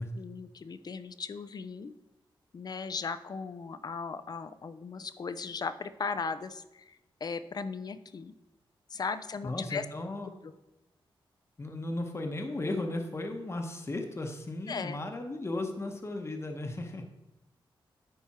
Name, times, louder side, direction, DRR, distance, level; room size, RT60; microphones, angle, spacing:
voice 1, 0.2-1.9 2.5-7.0 7.2-8.3 8.9-9.8 14.7-15.0, left 5 dB, 45° left, 13 dB, 0.5 m, -37 dB
voice 2, 9.4-10.3 11.6-17.0, left 2 dB, 30° left, 4 dB, 1.0 m, -35 dB
10.5 x 3.5 x 4.3 m, 0.99 s
cardioid pair, 80°, 9 cm